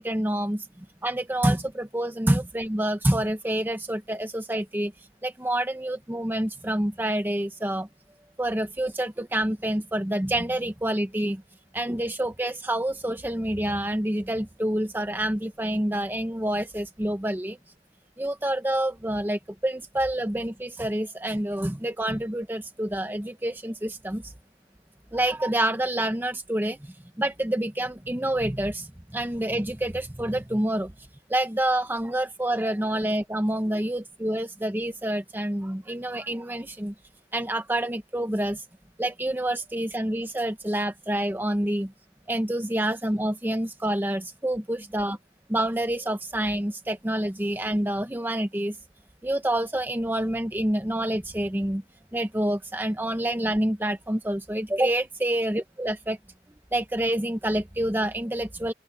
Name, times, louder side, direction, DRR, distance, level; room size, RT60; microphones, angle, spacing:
voice 1, 0.0-4.9 5.2-7.9 8.4-11.4 11.7-17.6 18.2-24.3 25.1-36.9 37.3-38.6 39.0-41.9 42.3-45.2 45.5-48.8 49.2-51.8 52.1-56.2 56.7-58.7, right 1 dB, 10° right, 0.8 m, -27 dB
open air
head